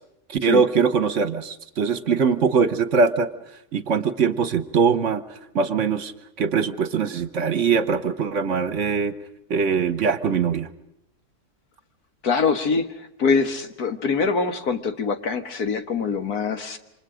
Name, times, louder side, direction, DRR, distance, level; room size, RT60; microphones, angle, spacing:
voice 1, 0.3-3.3 3.7-5.2 5.5-6.1 6.4-9.1 9.5-10.7, right 5 dB, 55° right, 12 dB, 1.3 m, -22 dB
voice 2, 12.2-12.9 13.2-16.8, left 5 dB, 80° left, 7 dB, 2.1 m, -23 dB
28.5 x 26.0 x 5.1 m, 0.82 s
omnidirectional pair, 1.6 m